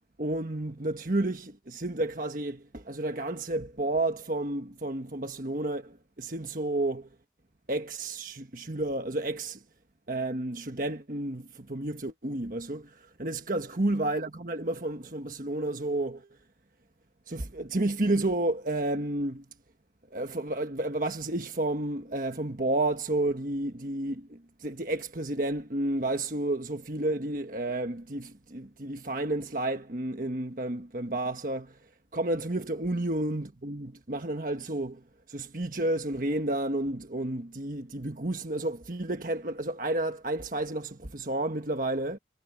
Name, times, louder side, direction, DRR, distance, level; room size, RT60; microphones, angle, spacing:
voice 1, 0.2-7.1 7.7-9.6 10.1-16.3 17.3-19.4 20.1-31.8 32.1-42.2, right 1 dB, 50° right, 1.4 m, -31 dB
head